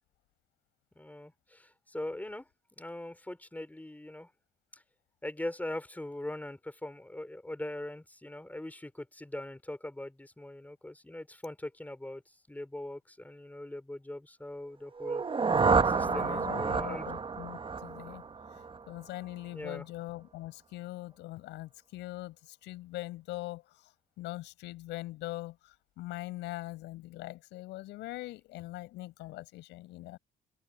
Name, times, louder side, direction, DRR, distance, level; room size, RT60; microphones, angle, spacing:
voice 1, 1.0-2.5 2.8-4.3 4.7-4.8 5.2-12.2 12.5-15.2 15.8-17.1 19.5-19.8, left 1 dB, 10° left, 4.3 m, -41 dB
sound 1, 15.0-18.9, right 5 dB, 30° right, 1.1 m, -29 dB
voice 2, 16.0-18.2 18.9-23.9 24.2-25.6 26.0-30.2, left 17 dB, 85° left, 6.0 m, -42 dB
open air
supercardioid pair, 75°, 18 cm